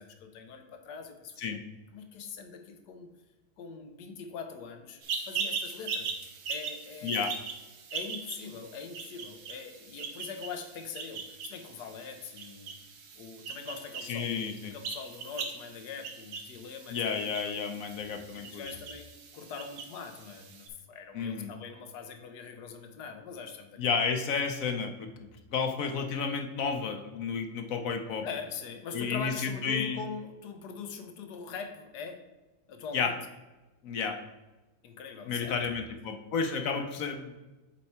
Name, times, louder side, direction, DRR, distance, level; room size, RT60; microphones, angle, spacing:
voice 1, 0.0-1.6 1.9-3.1 3.6-6.1 6.5-7.2 7.9-12.7 13.1-17.1 18.3-19.1 19.3-23.8 28.2-32.2 32.7-33.2 34.8-35.9 36.7-36.9, left 5 dB, 90° left, 6 dB, 1.4 m, -42 dB
sound 1, 5.0-20.7, right 5 dB, 75° right, 1.4 m, -40 dB
voice 2, 14.1-14.8 16.9-18.6 21.1-21.5 23.8-25.1 25.5-28.3 28.9-30.0 32.9-33.1 33.8-34.2 35.3-37.5, left 5 dB, 65° left, 6 dB, 1.0 m, -31 dB
7.3 x 4.6 x 4.3 m, 1.1 s
omnidirectional pair, 1.7 m